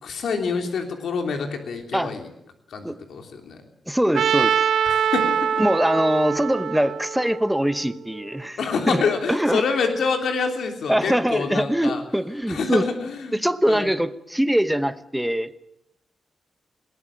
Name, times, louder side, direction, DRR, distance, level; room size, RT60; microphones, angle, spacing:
voice 1, 0.0-2.2 2.7-3.6 4.9-5.5 8.6-12.0 12.5-13.4 13.7-13.9, left 5 dB, 75° left, 4 dB, 3.2 m, -26 dB
voice 2, 3.9-4.6 5.6-9.6 10.9-12.8 13.3-15.5, equal, 5° right, 12 dB, 1.0 m, -23 dB
Trumpet, 4.1-8.2, right 8 dB, 75° right, 0.9 m, -24 dB
21.0 x 19.0 x 9.0 m, 0.81 s
wide cardioid pair, 145°, 0 cm